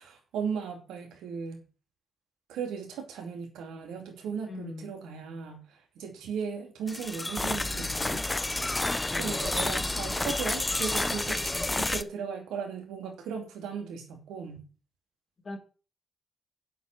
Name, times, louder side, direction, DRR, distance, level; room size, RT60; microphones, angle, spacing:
voice 1, 0.0-1.6 2.5-8.3 8.8-14.7, right 6 dB, 80° right, 2.5 m, -37 dB
voice 2, 4.5-4.9 9.0-9.7 15.4-15.6, left 3 dB, 45° left, 3.6 m, -41 dB
sound 1, 6.9-12.0, left 2 dB, 20° left, 0.8 m, -30 dB
8.1 x 7.8 x 6.0 m
hypercardioid pair, 40°, 0 cm